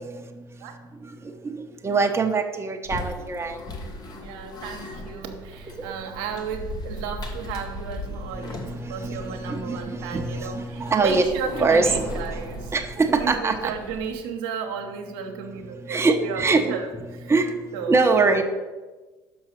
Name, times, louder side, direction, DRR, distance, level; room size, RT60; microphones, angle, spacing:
voice 1, 1.2-3.6 8.4-11.2 11.6-12.2 12.7-13.7 15.9-16.6 17.3-17.5 17.9-18.4, right 3 dB, 25° right, 4 dB, 1.0 m, -23 dB
sound 1, 2.8-14.3, left 1 dB, 40° left, 1.5 m, -38 dB
voice 2, 4.1-12.7 13.1-17.3 17.7-18.0, right 6 dB, 80° right, 3 dB, 1.1 m, -34 dB
6.0 x 5.5 x 6.6 m, 1.2 s
hypercardioid pair, 70°, 11 cm